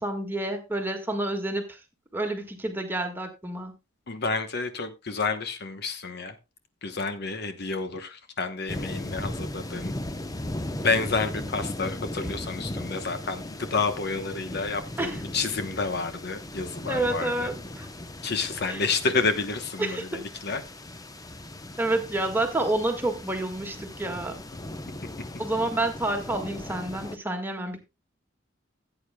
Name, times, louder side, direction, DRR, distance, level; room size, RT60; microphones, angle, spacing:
voice 1, 0.0-1.8 2.1-3.7 15.0-15.2 16.9-17.9 18.7-18.8 19.8-20.0 21.8-24.4 25.4-27.8, right 2 dB, 10° right, 4 dB, 1.7 m, -29 dB
voice 2, 4.1-6.4 6.8-9.9 10.8-17.5 18.2-20.6, left 4 dB, 55° left, 9 dB, 1.0 m, -29 dB
sound 1, 8.7-27.2, left 1 dB, 20° left, 0.8 m, -37 dB
16.0 x 8.8 x 2.2 m, 0.25 s
head